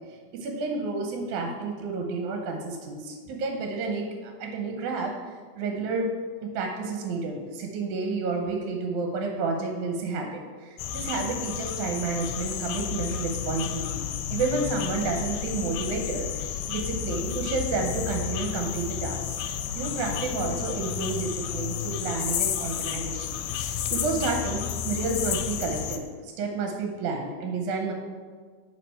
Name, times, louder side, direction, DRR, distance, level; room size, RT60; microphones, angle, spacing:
voice 1, 0.3-5.1 5.6-6.1 6.4-14.0 14.3-19.4 19.8-23.4 23.9-27.9, right 3 dB, 75° right, 2 dB, 2.2 m, -30 dB
sound 1, 10.8-26.0, left 9 dB, 85° left, 2.2 m, -31 dB
10.0 x 4.9 x 4.3 m, 1.5 s
omnidirectional pair, 3.7 m